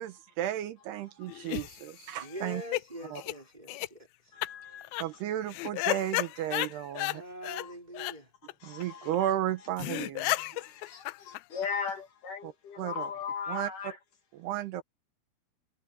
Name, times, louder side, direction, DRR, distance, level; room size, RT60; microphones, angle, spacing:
voice 1, 0.0-2.6 3.1-3.2 5.0-7.2 8.6-10.3 12.8-13.1 13.5-13.7 14.4-14.8, right 12 dB, 75° right, 3.0 m, -33 dB
sound 1, 1.3-2.8 3.2-3.3 3.7-3.9 4.4-4.5 4.8-5.0 5.5-7.2 7.4-7.7 7.9-8.1 8.5-8.6 8.8-8.9 9.1-9.2 9.5-9.6 9.8-11.9, left 19 dB, 85° left, 2.2 m, -33 dB
voice 2, 2.2-4.3 6.9-8.3 9.0-9.1, equal, 10° right, 4.0 m, -44 dB
voice 3, 11.5-12.4 12.8-13.9, left 6 dB, 55° left, 3.1 m, -34 dB
omnidirectional pair, 4.8 m